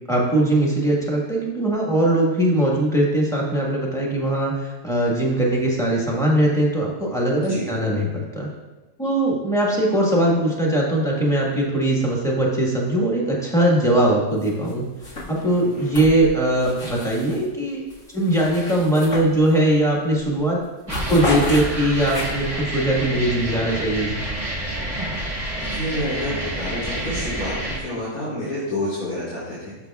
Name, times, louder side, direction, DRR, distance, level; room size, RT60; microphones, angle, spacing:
voice 1, 0.1-8.5 9.0-14.8 15.3-17.8 18.1-20.6 21.1-24.2, right 1 dB, ahead, -4 dB, 1.3 m, -20 dB
sound 1, 14.4-14.7 15.0-17.5 17.9-19.8 20.1-20.3 20.6-22.6, left 2 dB, 65° left, 2.2 m, -32 dB
sound 2, 20.9-27.8, right 1 dB, 25° right, 1.2 m, -29 dB
voice 2, 25.6-29.9, left 1 dB, 80° left, -11 dB, 2.8 m, -29 dB
11.0 x 6.6 x 2.3 m, 1.1 s
omnidirectional pair, 1.5 m